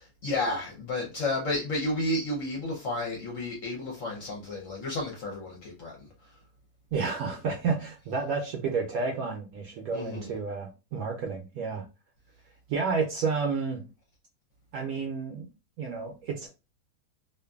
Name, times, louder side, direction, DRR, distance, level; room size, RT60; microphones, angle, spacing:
voice 1, 0.0-6.4 9.9-10.3, left 2 dB, 65° left, 0.9 m, -32 dB
voice 2, 6.9-11.8 12.7-13.8 14.7-15.5 15.8-16.5, right 5 dB, 70° right, 0.9 m, -30 dB
2.5 x 2.5 x 2.3 m
omnidirectional pair, 1.7 m